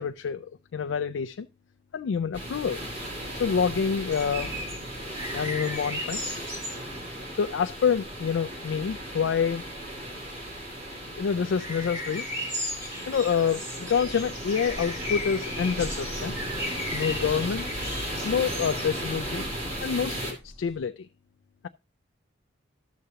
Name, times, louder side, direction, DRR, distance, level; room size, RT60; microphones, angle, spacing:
voice 1, 0.0-1.5 1.9-2.8 3.3-4.5 5.3-6.2 7.4-9.6 11.2-12.3 13.1-16.3 16.9-17.8 18.2-19.4 19.8-21.1, left 6 dB, 75° left, 0.3 m, -27 dB
sound 1, 2.3-20.3, equal, 30° right, 2.5 m, -36 dB
sound 2, 4.1-20.7, left 1 dB, 15° right, 1.6 m, -38 dB
12.0 x 6.8 x 2.8 m
head